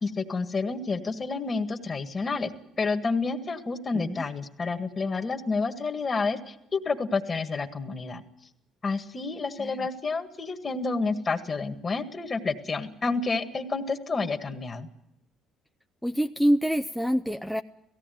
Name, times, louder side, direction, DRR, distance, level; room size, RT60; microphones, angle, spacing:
voice 1, 0.0-2.5 2.8-8.2 8.8-14.9, left 4 dB, 35° left, 7 dB, 1.8 m, -29 dB
voice 2, 16.0-17.6, equal, ahead, 8 dB, 0.6 m, -26 dB
17.5 x 16.0 x 9.3 m, 0.84 s
cardioid pair, 90°, 0 cm